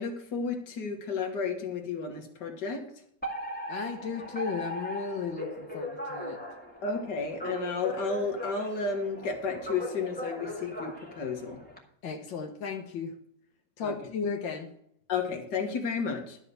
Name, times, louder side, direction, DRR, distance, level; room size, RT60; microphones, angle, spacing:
voice 1, 0.0-2.9 6.8-11.6 13.8-14.0 15.1-16.4, left 4 dB, 65° left, 3 dB, 2.2 m, -32 dB
Alarm, 3.2-11.8, equal, 5° left, 1.8 m, -38 dB
voice 2, 3.7-6.4 12.0-13.1 13.8-14.7, left 5 dB, 90° left, 2 dB, 1.9 m, -35 dB
12.0 x 5.8 x 6.8 m, 0.69 s
omnidirectional pair, 2.0 m